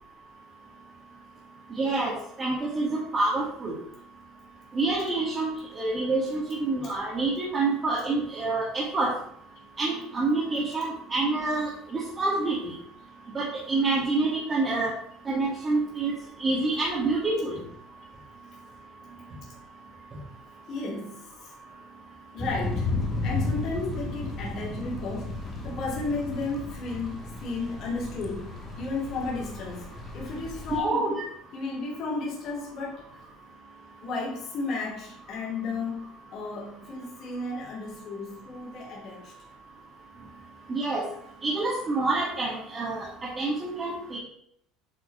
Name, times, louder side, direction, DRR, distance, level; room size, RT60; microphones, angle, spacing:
voice 1, 1.8-2.1 2.4-3.7 4.7-5.5 5.7-9.1 9.8-12.7 13.3-14.9 15.2-17.5 30.7-31.2 40.7-41.0 41.4-44.2, right 3 dB, 20° right, -6 dB, 1.7 m, -27 dB
voice 2, 20.7-21.6 22.3-22.9 23.2-29.8 30.1-31.1 31.5-33.0 34.0-39.3, left 3 dB, 35° left, -4 dB, 2.4 m, -33 dB
Thunder / Rain, 22.4-30.8, left 2 dB, 20° left, 1.2 m, -34 dB
8.5 x 4.6 x 4.6 m, 0.69 s
cardioid pair, 180°, 0 cm